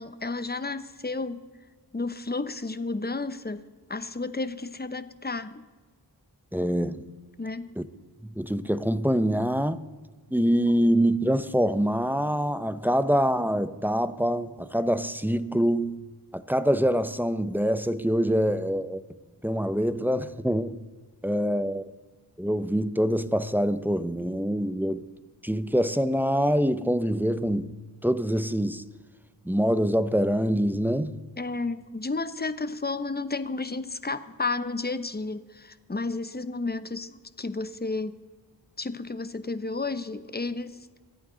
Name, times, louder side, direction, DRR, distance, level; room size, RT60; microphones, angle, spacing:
voice 1, 0.0-1.4 1.9-5.6 7.4-7.7 31.4-38.2 38.8-40.9, left 3 dB, 25° left, 0.9 m, -32 dB
voice 2, 6.5-7.1 7.8-7.9 8.2-9.8 10.3-16.0 16.3-19.0 19.4-20.8 21.2-21.9 22.4-25.1 25.4-27.7 28.0-28.8 29.4-31.2, equal, 5° right, 0.7 m, -25 dB
25.5 x 8.7 x 3.9 m
cardioid pair, 40°, 40 cm